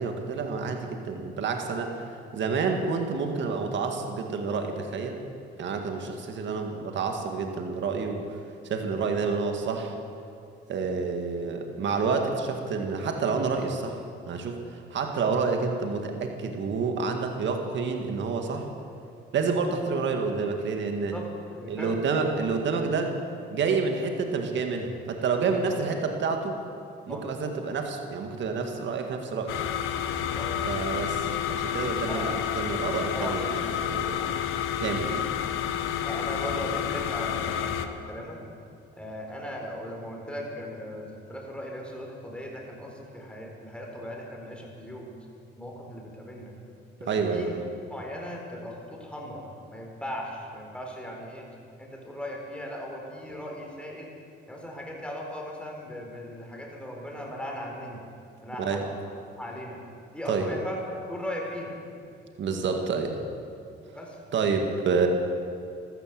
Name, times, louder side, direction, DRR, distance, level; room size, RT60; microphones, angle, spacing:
voice 1, 0.0-2.0 2.3-5.2 5.6-8.4 8.6-9.9 10.7-18.7 19.3-21.1 21.7-23.1 23.5-26.6 27.1-29.5 30.7-33.5 33.8-34.0 34.8-35.3 47.1-47.6 58.6-58.8 60.3-60.5 62.4-63.2 64.3-65.1, right 4 dB, 65° right, 4 dB, 1.9 m, -28 dB
voice 2, 8.9-9.2 21.1-22.0 25.5-25.6 27.1-27.2 30.3-30.5 32.1-32.4 33.1-33.9 34.2-34.4 36.1-38.4 39.0-45.1 45.5-46.5 47.0-47.5 47.9-51.5 51.8-54.1 54.5-58.0 58.4-59.0 59.4-59.8 60.1-61.7 62.7-62.8 63.9-64.2, equal, 5° left, -1 dB, 4.3 m, -38 dB
sound 1, 29.5-37.9, left 9 dB, 90° left, 1.0 m, -30 dB
14.0 x 13.0 x 7.7 m, 2.5 s
cardioid pair, 90°, 20 cm